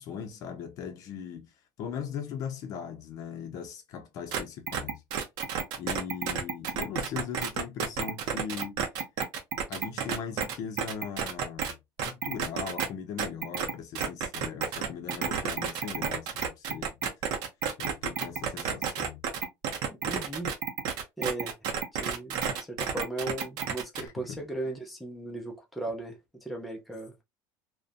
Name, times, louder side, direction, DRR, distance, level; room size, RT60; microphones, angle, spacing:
voice 1, 0.0-1.5 1.8-5.0 5.8-8.8 9.7-11.8 12.0-17.0 17.8-19.2 24.0-24.4, left 7 dB, 45° left, 0.5 m, -39 dB
sound 1, 4.3-4.4 4.7-11.7 12.0-12.9 13.2-24.1, right 7 dB, 55° right, 0.6 m, -31 dB
voice 2, 20.0-20.5 21.2-21.5 21.9-27.2, right 2 dB, ahead, 0.5 m, -37 dB
2.5 x 2.1 x 2.4 m
cardioid pair, 155°, 8 cm